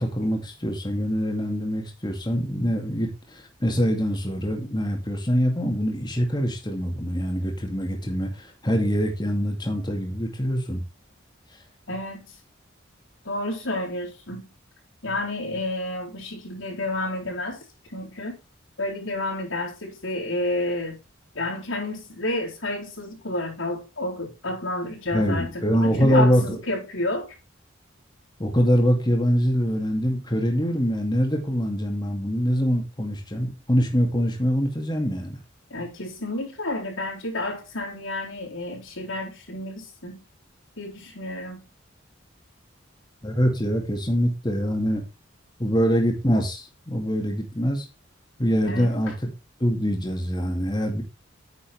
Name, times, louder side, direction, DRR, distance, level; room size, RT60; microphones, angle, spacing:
voice 1, 0.0-10.8 25.1-26.6 28.4-35.4 43.2-45.0 45.6-47.9 48.4-49.1 49.6-51.0, equal, 20° left, 2.3 m, -24 dB
voice 2, 11.9-12.3 13.2-14.5 15.0-17.6 17.9-18.3 18.8-21.0 21.3-27.3 35.7-40.2 40.8-41.7 48.6-48.9, left 2 dB, 75° left, 4.1 m, -30 dB
9.5 x 6.7 x 3.5 m
head